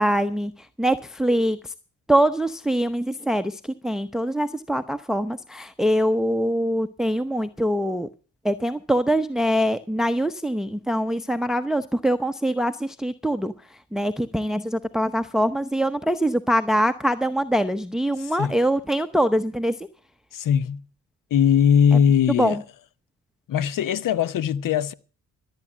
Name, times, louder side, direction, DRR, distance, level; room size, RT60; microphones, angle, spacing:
voice 1, 0.0-1.7 2.1-8.1 8.4-19.9 21.9-22.0 22.3-22.6, equal, ahead, 0.8 m, -23 dB
voice 2, 20.3-20.8 21.3-22.6 23.5-24.9, left 8 dB, 65° left, 0.9 m, -20 dB
13.5 x 9.0 x 7.3 m
supercardioid pair, 50°, 35 cm